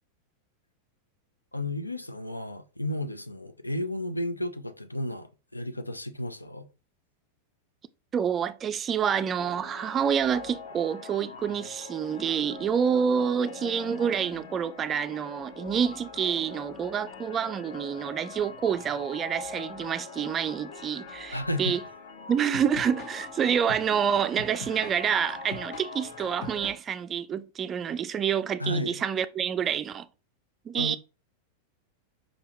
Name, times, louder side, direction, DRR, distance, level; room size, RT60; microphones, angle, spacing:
voice 1, 1.5-6.7 21.3-21.8 28.6-29.0 30.8-31.0, left 1 dB, 85° left, 0.5 m, -33 dB
voice 2, 8.1-21.8 22.3-30.1 30.7-31.0, right 7 dB, 25° right, 0.3 m, -28 dB
sound 1, 9.4-26.7, left 4 dB, 50° left, 1.0 m, -42 dB
5.1 x 3.4 x 3.0 m
figure-of-eight pair, 90°, 0 cm